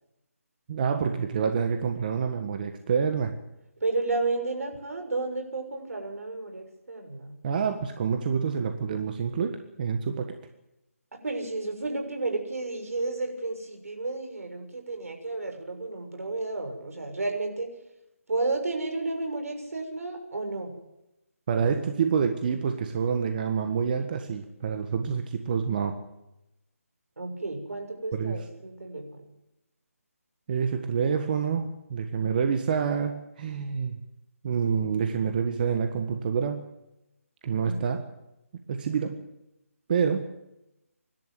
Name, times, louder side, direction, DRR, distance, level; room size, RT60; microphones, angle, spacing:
voice 1, 0.7-3.4 7.4-10.3 21.5-25.9 28.1-28.4 30.5-34.0 34.4-36.6 37.4-38.1 38.7-39.1 39.9-40.2, right 6 dB, 35° right, 6 dB, 1.6 m, -27 dB
voice 2, 3.8-7.4 11.2-17.7 18.3-20.7 27.2-29.3 37.6-37.9, right 3 dB, 70° right, 4 dB, 6.4 m, -32 dB
25.0 x 12.5 x 9.4 m, 0.92 s
figure-of-eight pair, 160°, 8 cm